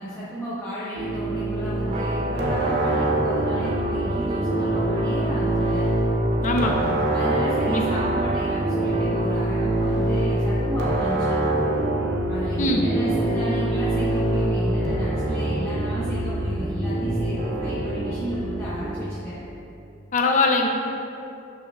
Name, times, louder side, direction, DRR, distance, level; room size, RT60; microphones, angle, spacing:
voice 1, 0.0-5.9 7.1-11.4 12.3-19.4, equal, 15° left, -12 dB, 1.1 m, -33 dB
sound 1, 0.9-19.0, right 1 dB, 55° right, 1.0 m, -25 dB
Clean Strumming & Arpeggio, 1.8-11.4, right 3 dB, 30° right, 0.3 m, -34 dB
voice 2, 6.4-7.0 7.7-7.8 12.6-12.9 20.1-20.7, left 2 dB, 40° left, 2 dB, 0.6 m, -22 dB
10.0 x 5.7 x 2.4 m, 2.7 s
head